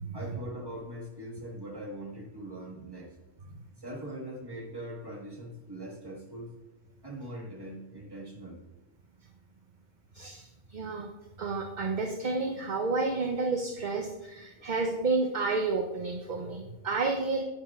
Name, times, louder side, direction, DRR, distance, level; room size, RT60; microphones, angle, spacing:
voice 1, 0.1-3.1 3.8-6.5 7.0-8.6, right 1 dB, 20° right, -2 dB, 1.5 m, -41 dB
voice 2, 10.1-11.1 11.4-17.4, right 3 dB, 45° right, 3 dB, 0.7 m, -30 dB
11.0 x 9.4 x 2.4 m, 1.1 s
omnidirectional pair, 1.2 m